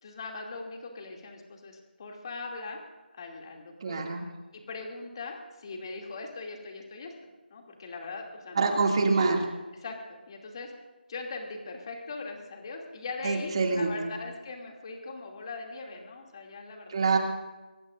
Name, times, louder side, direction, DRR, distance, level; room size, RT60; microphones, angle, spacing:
voice 1, 0.0-2.8 3.1-4.0 4.5-7.1 7.5-8.7 9.2-9.3 9.8-10.7 11.1-17.1, left 3 dB, 30° left, 1 dB, 2.7 m, -40 dB
voice 2, 3.8-4.3 8.5-9.4 13.2-14.1 16.9-17.2, right 4 dB, 30° right, 2 dB, 2.5 m, -25 dB
23.5 x 20.5 x 2.6 m, 1.2 s
figure-of-eight pair, 170°, 6 cm